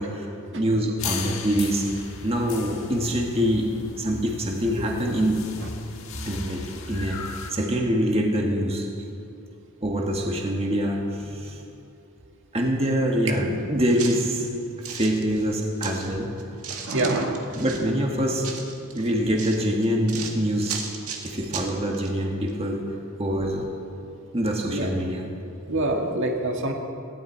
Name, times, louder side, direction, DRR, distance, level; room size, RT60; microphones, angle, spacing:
voice 1, 0.0-1.9 2.2-3.7 4.0-5.4 6.2-7.2 7.5-8.9 9.8-11.0 11.3-11.6 12.5-14.5 14.9-16.3 17.6-18.5 18.9-20.8 21.2-22.8 23.2-23.7 24.3-25.2, equal, 25° right, 0 dB, 1.6 m, -25 dB
sound 1, 1.0-7.5, left 4 dB, 60° left, 1.6 m, -37 dB
voice 2, 11.3-11.7 16.7-17.4 24.7-24.9 25.7-26.7, right 2 dB, 55° right, 1 dB, 1.7 m, -26 dB
sound 2, 13.4-13.5 13.9-16.1 16.4-17.9 18.4-22.1 22.5-22.6, right 6 dB, 80° right, 1.9 m, -36 dB
18.5 x 16.0 x 4.5 m, 2.5 s
head